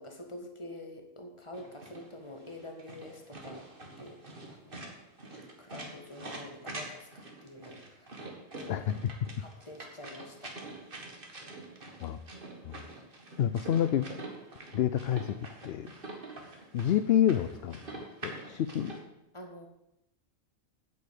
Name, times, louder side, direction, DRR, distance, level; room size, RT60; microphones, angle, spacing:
voice 1, 0.0-4.2 4.5-4.9 5.6-8.9 9.4-10.6 19.3-19.7, left 1 dB, 20° left, 4 dB, 1.6 m, -47 dB
sound 1, 1.5-19.0, right 2 dB, 40° right, 1.9 m, -45 dB
voice 2, 8.7-9.1 12.0-12.2 12.6-12.8 13.4-14.1 14.7-15.4 15.6-15.9 16.7-19.0, left 10 dB, 60° left, 11 dB, 0.7 m, -28 dB
8.6 x 8.0 x 8.5 m, 0.87 s
omnidirectional pair, 1.4 m